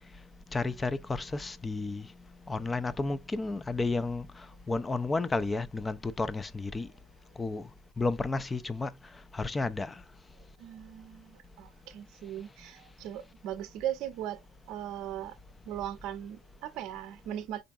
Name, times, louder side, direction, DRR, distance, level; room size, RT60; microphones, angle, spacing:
voice 1, 0.5-2.1 2.5-4.3 4.7-6.9 7.4-7.7 8.0-8.9 9.3-9.9, left 3 dB, 20° left, 0.5 m, -31 dB
voice 2, 10.6-15.4 15.6-17.6, right 11 dB, 60° right, 0.6 m, -39 dB
3.9 x 3.4 x 2.3 m
hypercardioid pair, 70°, 0 cm